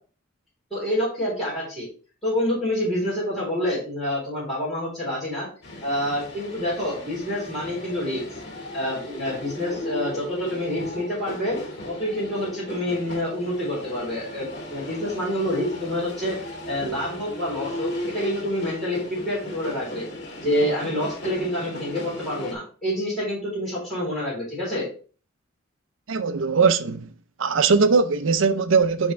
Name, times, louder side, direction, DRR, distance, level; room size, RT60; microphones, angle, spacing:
voice 1, 0.7-1.9 2.2-5.5 5.8-8.2 8.7-11.6 11.9-20.1 20.4-24.9, left 1 dB, ahead, 3.5 m, -27 dB
sound 1, 5.6-22.5, left 1 dB, 50° left, 2.1 m, -36 dB
voice 2, 26.1-27.1 27.4-29.1, right 5 dB, 65° right, 0.5 m, -20 dB
10.5 x 3.5 x 3.3 m
head